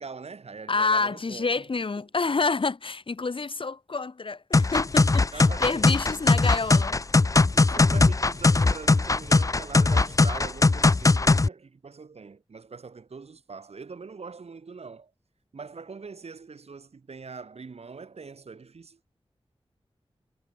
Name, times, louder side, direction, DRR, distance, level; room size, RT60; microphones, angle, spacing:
voice 1, 0.0-1.7 5.3-6.3 7.5-15.1 15.5-19.0, right 4 dB, 85° right, 5.4 m, -42 dB
voice 2, 0.7-7.0 7.7-7.8, left 4 dB, 55° left, 1.6 m, -28 dB
sound 1, 4.5-11.5, left 3 dB, 35° left, 0.6 m, -20 dB
wide cardioid pair, 85°, 10 cm